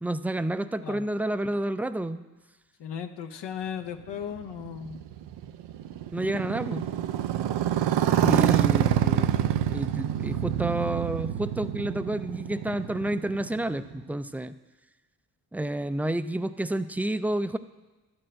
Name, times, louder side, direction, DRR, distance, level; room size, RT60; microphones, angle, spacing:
voice 1, 0.0-2.2 6.1-6.8 8.2-9.4 9.7-14.5 15.5-17.6, right 1 dB, 5° right, 12 dB, 0.3 m, -30 dB
voice 2, 0.6-1.0 2.8-5.0, left 8 dB, 80° left, 5 dB, 0.8 m, -37 dB
Motorcycle, 4.1-14.0, right 11 dB, 90° right, 0.5 m, -27 dB
11.0 x 4.6 x 7.5 m, 1.2 s
cardioid pair, 60°, 41 cm